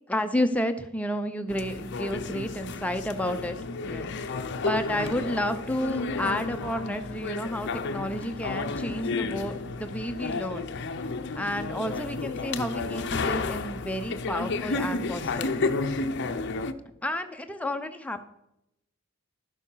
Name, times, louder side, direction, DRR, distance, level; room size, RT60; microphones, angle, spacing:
voice 1, 0.1-3.6 3.8-10.7 11.4-15.7 17.0-18.2, equal, 5° left, 6 dB, 0.6 m, -31 dB
sound 1, 1.5-16.7, left 3 dB, 50° left, 0.6 m, -32 dB
11.5 x 7.0 x 5.6 m, 0.84 s
head